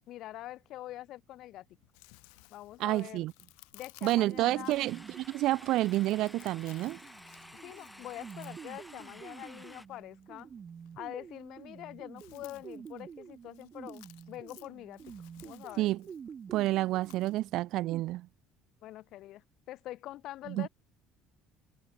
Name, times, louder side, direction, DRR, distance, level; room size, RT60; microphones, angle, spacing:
voice 1, 0.1-1.7 2.5-3.3 3.7-4.7 7.6-10.5 11.0-15.1 15.4-15.9 18.8-20.7, left 15 dB, 65° left, 0.9 m, -45 dB
Chewing mastication, 1.7-17.4, left 40 dB or more, 80° left, 2.6 m, -60 dB
voice 2, 2.8-3.3 4.0-7.0 15.8-16.0 16.5-18.3 20.5-20.7, right 16 dB, 70° right, 0.3 m, -29 dB
sound 1, 4.3-18.0, right 7 dB, 40° right, 5.0 m, -49 dB
sound 2, 4.7-9.9, left 1 dB, 5° left, 4.5 m, -52 dB
supercardioid pair, 80°, 0 cm